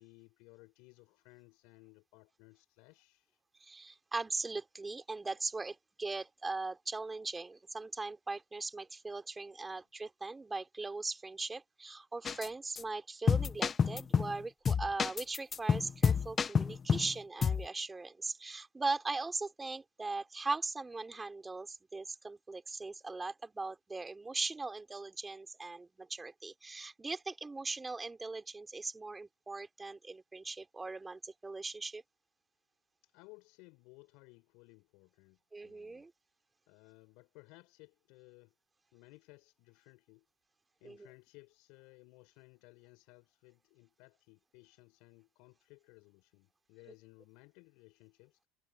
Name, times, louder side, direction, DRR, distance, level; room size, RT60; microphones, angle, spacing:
voice 1, 0.0-3.4 9.6-9.8 33.0-36.1 36.7-38.5 38.9-40.3 40.8-48.5, left 26 dB, 65° left, 7.4 m, -59 dB
voice 2, 3.6-32.0 35.5-36.1 40.8-41.0, right 3 dB, 15° right, 3.4 m, -39 dB
sound 1, 12.3-12.5 12.8-12.9 13.3-14.4 14.7-17.1 17.4-17.7, left 6 dB, 25° left, 0.8 m, -29 dB
supercardioid pair, 125°, 0 cm